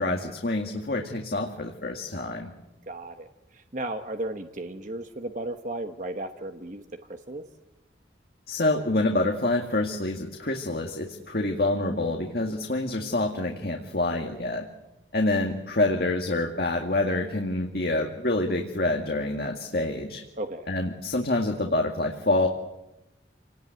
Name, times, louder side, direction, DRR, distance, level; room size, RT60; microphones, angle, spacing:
voice 1, 0.0-2.5 8.5-14.7 15.1-20.2 20.7-22.5, left 2 dB, 55° left, 2 dB, 2.1 m, -27 dB
voice 2, 2.9-7.4 20.4-20.7, right 1 dB, 40° right, 6 dB, 1.2 m, -35 dB
28.5 x 18.5 x 9.3 m, 0.95 s
head